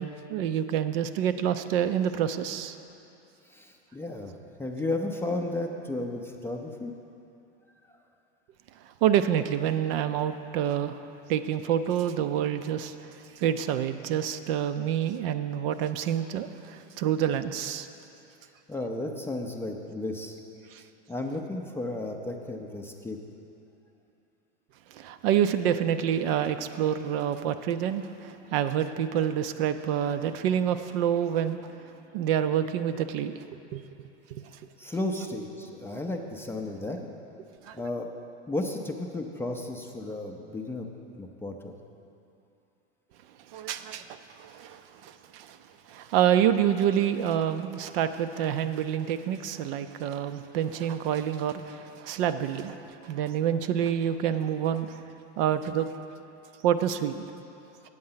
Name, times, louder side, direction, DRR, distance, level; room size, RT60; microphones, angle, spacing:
voice 1, 0.0-2.8 9.0-11.0 11.3-12.9 13.4-17.9 20.7-20.8 24.9-31.6 32.1-33.3 33.7-34.4 37.6-37.8 43.5-44.0 44.4-45.6 45.9-55.0 55.4-55.9 56.6-57.2, right 9 dB, 55° right, 10 dB, 0.5 m, -27 dB
voice 2, 3.5-4.3 4.6-6.9 18.7-20.4 20.7-20.8 21.1-23.2 34.8-37.1 37.7-38.1 38.5-40.9 41.2-41.7, left 2 dB, 5° left, 1 dB, 0.5 m, -33 dB
9.2 x 7.8 x 5.6 m, 2.8 s
hypercardioid pair, 120°, 34 cm